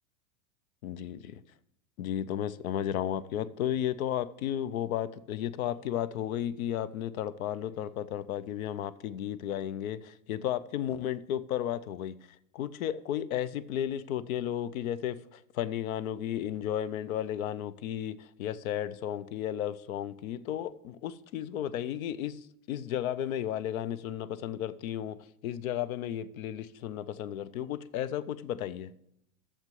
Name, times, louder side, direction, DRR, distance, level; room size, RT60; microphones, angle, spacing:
voice 1, 0.8-1.4 2.0-12.2 12.5-25.2 25.4-28.9, left 10 dB, 80° left, 0.6 m, -33 dB
6.7 x 6.0 x 7.5 m
supercardioid pair, 175°, 41 cm